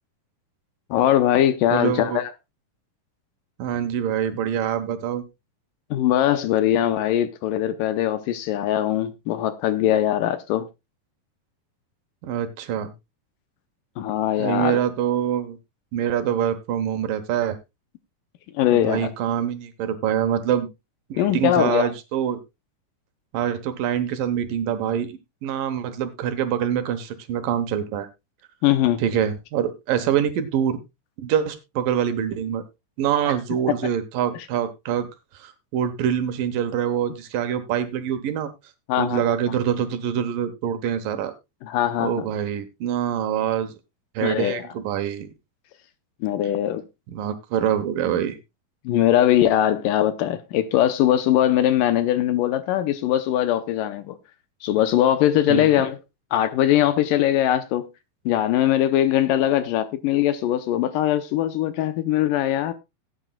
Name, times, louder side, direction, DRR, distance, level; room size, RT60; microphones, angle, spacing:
voice 1, 0.9-2.3 5.9-10.7 14.0-14.8 18.5-19.1 21.2-21.9 28.6-29.0 33.3-33.4 38.9-39.2 41.6-42.2 44.2-44.6 46.2-46.8 48.9-54.2 54.6-56.0 56.3-57.9 58.3-62.7, left 12 dB, 75° left, 2.2 m, -21 dB
voice 2, 1.7-2.2 3.6-5.2 12.2-12.9 14.4-15.6 15.9-17.6 18.7-20.7 21.1-22.4 23.3-28.1 29.0-30.8 31.2-32.6 33.0-35.1 35.3-38.5 39.0-41.3 42.0-43.7 44.1-45.3 47.1-48.4 55.5-55.7, right 9 dB, 70° right, 2.7 m, -25 dB
18.0 x 9.0 x 2.3 m
omnidirectional pair, 4.3 m